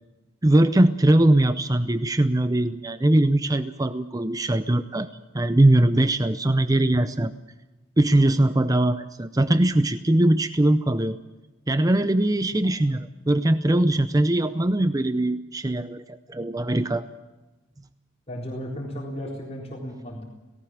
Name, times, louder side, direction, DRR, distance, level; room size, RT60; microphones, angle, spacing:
voice 1, 0.4-7.3 8.0-11.2 11.7-17.0, right 1 dB, 20° right, 12 dB, 0.6 m, -21 dB
voice 2, 18.3-20.2, equal, 35° left, -2 dB, 4.0 m, -35 dB
18.0 x 18.0 x 8.7 m, 1.1 s
head